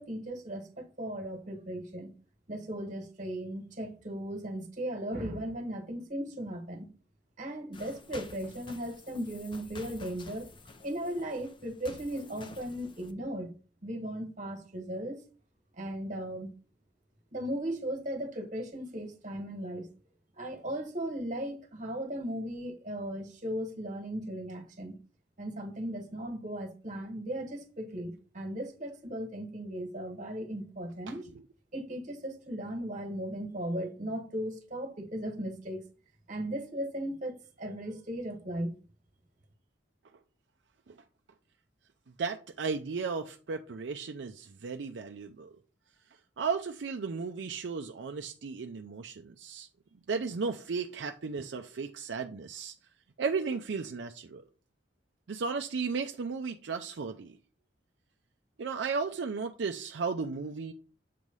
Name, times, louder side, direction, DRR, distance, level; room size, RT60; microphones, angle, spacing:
voice 1, 0.0-2.1 2.5-6.9 7.4-10.5 10.8-13.5 13.8-15.2 15.8-16.5 17.3-19.9 20.4-24.9 25.4-31.3 31.7-35.8 36.3-38.7, right 1 dB, 45° right, 1.4 m, -37 dB
sound 1, 7.7-13.1, left 3 dB, 25° left, 0.6 m, -50 dB
voice 2, 31.1-31.4 40.9-41.0 42.2-45.6 46.4-49.7 50.1-52.7 53.2-54.4 55.3-57.4 58.6-60.7, right 5 dB, 75° right, 0.5 m, -35 dB
7.5 x 3.2 x 5.3 m
head